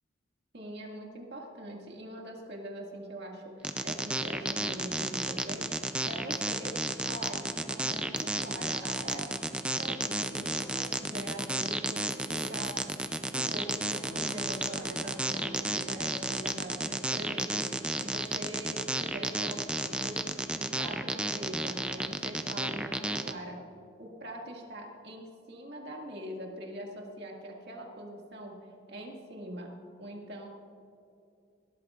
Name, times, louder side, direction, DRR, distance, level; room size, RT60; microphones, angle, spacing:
voice 1, 0.5-6.7 7.0-9.2 9.8-12.8 13.3-20.2 20.5-23.6 24.0-28.6 28.9-29.7 30.0-30.5, right 1 dB, 60° right, -1 dB, 2.0 m, -43 dB
sound 1, 3.6-23.3, right 1 dB, 5° right, 0.4 m, -32 dB
sound 2, 10.6-10.8 13.4-15.8, equal, 15° left, 3.3 m, -49 dB
18.0 x 12.5 x 2.5 m, 2.6 s
head